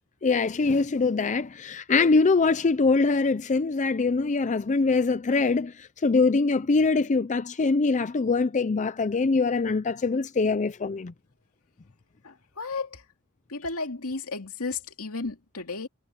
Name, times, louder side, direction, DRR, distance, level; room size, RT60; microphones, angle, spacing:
voice 1, 0.2-11.1, left 4 dB, 35° left, 0.5 m, -23 dB
voice 2, 12.2-13.0 13.5-15.9, left 3 dB, 80° left, 2.6 m, -33 dB
head